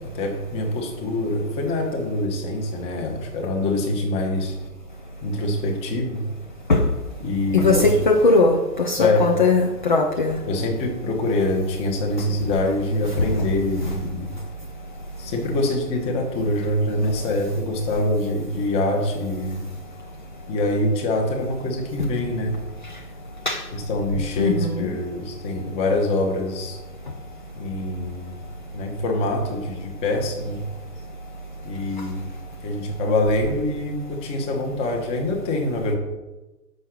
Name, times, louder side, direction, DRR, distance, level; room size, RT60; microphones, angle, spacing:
voice 1, 0.0-4.6 5.2-6.3 7.2-7.9 9.0-9.3 10.5-14.3 15.2-19.7 20.5-22.6 23.7-26.8 27.5-28.4 28.7-30.6 31.6-32.3 32.6-35.9, left 1 dB, 10° left, 0.9 m, -25 dB
voice 2, 7.5-10.4 23.5-23.6 24.4-24.9, left 3 dB, 35° left, 0.4 m, -19 dB
6.5 x 5.4 x 6.3 m
figure-of-eight pair, 120°, 49 cm